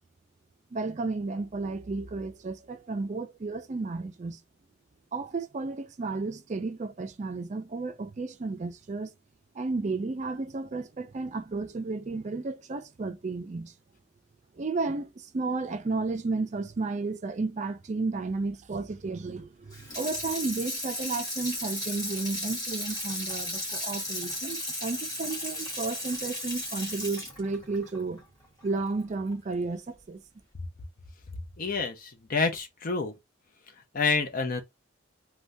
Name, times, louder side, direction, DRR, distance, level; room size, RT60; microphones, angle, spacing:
voice 1, 0.7-4.4 5.1-9.1 9.5-13.7 14.6-28.2 28.6-30.2, right 3 dB, 35° right, 0.4 m, -33 dB
Water tap faucet / Sink (filling or washing), 19.7-28.9 29.3-29.4, left 1 dB, 20° left, 1.4 m, -35 dB
voice 2, 31.6-33.1 33.9-34.6, left 4 dB, 45° left, 0.6 m, -28 dB
3.4 x 2.2 x 2.6 m
head